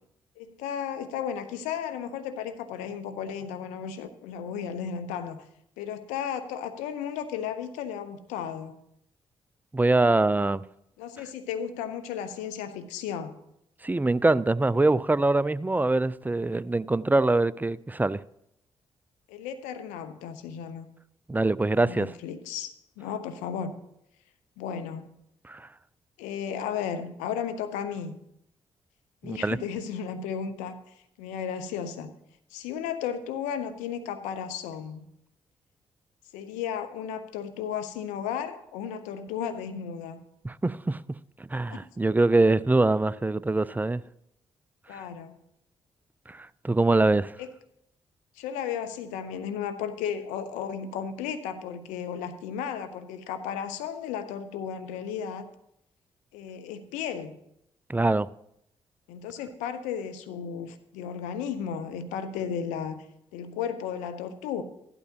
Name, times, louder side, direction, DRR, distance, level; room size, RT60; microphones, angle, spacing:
voice 1, 0.4-5.4 5.8-8.8 11.0-13.4 19.3-20.9 21.8-23.7 24.6-25.1 26.2-28.2 29.2-32.1 32.5-35.0 36.3-40.2 41.7-41.8 44.9-45.3 47.4-47.5 48.4-55.5 56.3-57.4 59.1-63.1 63.3-64.6, left 8 dB, 80° left, 0.8 m, -34 dB
voice 2, 9.7-10.6 13.8-18.2 21.3-22.1 25.5-25.7 29.2-29.6 40.4-41.0 41.5-44.0 44.9-45.0 46.3-47.3 57.9-58.3, right 2 dB, 15° right, 0.5 m, -23 dB
15.5 x 12.0 x 2.9 m
hypercardioid pair, 40°, 13 cm